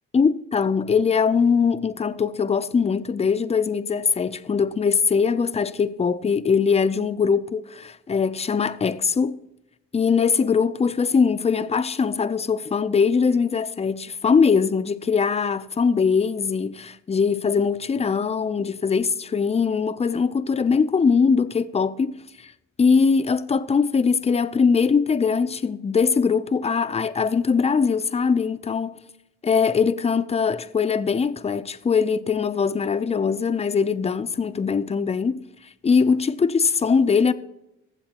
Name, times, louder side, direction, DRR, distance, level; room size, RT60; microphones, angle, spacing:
voice 1, 0.1-9.4 9.9-22.5 22.8-29.0 29.4-35.4 35.8-37.3, left 5 dB, 20° left, 0.5 m, -21 dB
21.5 x 7.6 x 2.9 m
cardioid pair, 90°, 30 cm